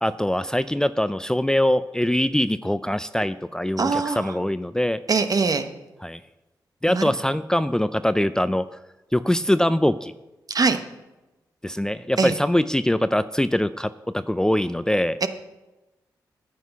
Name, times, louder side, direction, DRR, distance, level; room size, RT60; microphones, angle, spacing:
voice 1, 0.0-5.0 6.0-6.2 6.8-8.7 9.1-10.1 11.6-15.2, left 1 dB, 10° left, 14 dB, 0.4 m, -23 dB
voice 2, 3.8-4.3 5.1-5.7 6.9-7.1 10.5-10.8 12.2-12.3 15.2-15.3, right 4 dB, 50° right, 9 dB, 1.1 m, -22 dB
9.2 x 8.1 x 5.8 m, 1.1 s
supercardioid pair, 45°, 8 cm